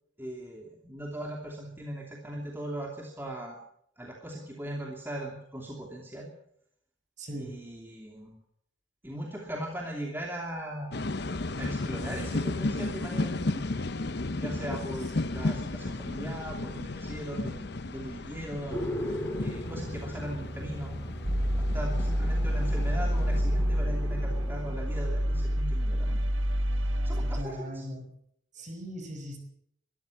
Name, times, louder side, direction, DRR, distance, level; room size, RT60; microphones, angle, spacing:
voice 1, 0.2-3.6 4.0-6.3 7.3-8.4 9.0-11.1 11.6-13.7 14.3-21.0 21.5-26.2 27.0-27.8, right 1 dB, 10° right, -1 dB, 2.8 m, -39 dB
voice 2, 7.2-7.6 15.2-15.5 27.1-28.1 28.5-29.4, equal, 35° right, 5 dB, 5.4 m, -40 dB
sound 1, 10.9-23.4, left 2 dB, 55° left, 0.9 m, -34 dB
sound 2, 18.7-26.4, equal, 10° left, 3.2 m, -39 dB
sound 3, 21.2-27.4, equal, 75° right, 1.3 m, -28 dB
22.5 x 13.5 x 8.4 m, 0.71 s
head